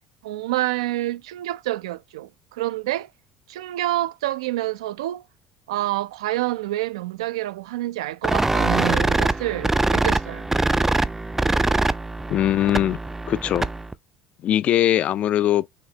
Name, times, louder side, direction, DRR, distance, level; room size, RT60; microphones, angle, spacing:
voice 1, 0.2-3.1 3.5-5.2 5.7-10.5, right 16 dB, 80° right, 0.3 m, -27 dB
sound 1, 8.2-13.9, right 2 dB, 10° right, 0.4 m, -23 dB
voice 2, 12.3-13.0 13.3-13.7 14.4-15.7, left 12 dB, 50° left, 0.4 m, -21 dB
5.9 x 3.2 x 2.8 m
hypercardioid pair, 70°, 3 cm